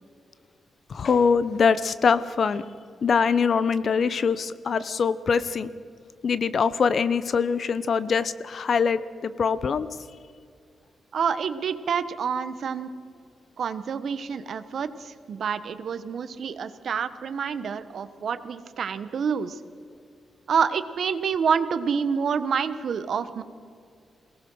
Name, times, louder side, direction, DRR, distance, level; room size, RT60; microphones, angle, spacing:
voice 1, 0.9-2.6 3.0-5.7 6.2-9.9, left 6 dB, 60° left, 15 dB, 0.9 m, -23 dB
voice 2, 11.1-12.9 13.6-19.6 20.5-23.4, right 6 dB, 65° right, 13 dB, 1.2 m, -27 dB
22.5 x 18.5 x 6.3 m, 2.3 s
supercardioid pair, 55°, 0 cm